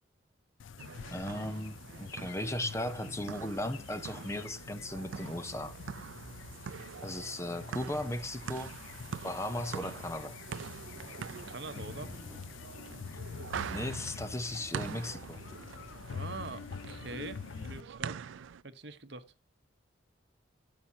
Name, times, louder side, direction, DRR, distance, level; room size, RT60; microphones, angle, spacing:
sound 1, 0.6-17.8, left 6 dB, 80° left, 0.4 m, -46 dB
sound 2, 0.8-18.6, right 7 dB, 80° right, 0.4 m, -44 dB
voice 1, 1.1-5.8 7.0-8.8 9.2-10.4 13.7-15.4, left 1 dB, 15° left, 0.6 m, -37 dB
Thunder / Rain, 10.9-16.9, equal, 20° right, 3.0 m, -55 dB
voice 2, 11.5-12.1 15.9-18.2 18.6-19.2, right 3 dB, 60° right, 1.0 m, -44 dB
13.0 x 7.4 x 2.8 m
head